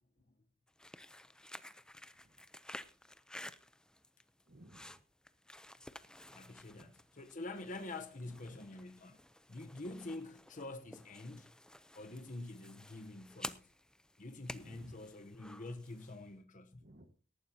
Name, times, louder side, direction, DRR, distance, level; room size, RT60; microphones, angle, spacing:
sound 1, 0.7-16.3, left 1 dB, 5° left, 0.6 m, -53 dB
voice 1, 4.5-5.0 6.7-6.9 8.2-8.8 14.6-15.0 16.8-17.1, right 1 dB, 50° right, 1.6 m, -59 dB
voice 2, 6.3-9.2 9.5-11.5 11.9-13.7 14.2-16.8, left 2 dB, 40° left, 1.0 m, -47 dB
18.5 x 14.0 x 2.9 m
head